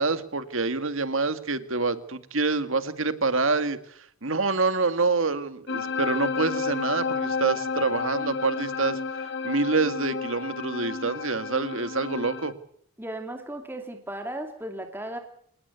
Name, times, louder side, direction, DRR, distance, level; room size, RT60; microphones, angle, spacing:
voice 1, 0.0-3.8 4.2-12.5, right 3 dB, 70° right, 11 dB, 1.9 m, -26 dB
sound 1, 5.7-12.5, left 5 dB, 55° left, 2.0 m, -31 dB
voice 2, 13.0-15.2, right 1 dB, 10° right, 5 dB, 2.7 m, -35 dB
27.5 x 19.0 x 8.3 m, 0.64 s
head